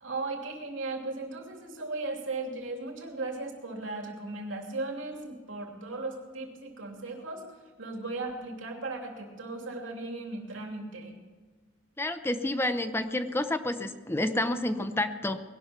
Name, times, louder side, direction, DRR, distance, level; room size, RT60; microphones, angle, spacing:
voice 1, 0.0-7.4 7.8-11.1, right 3 dB, 85° right, 2 dB, 2.9 m, -37 dB
voice 2, 12.0-15.4, left 1 dB, 10° left, 10 dB, 0.7 m, -29 dB
20.0 x 11.5 x 5.9 m, 1.4 s
head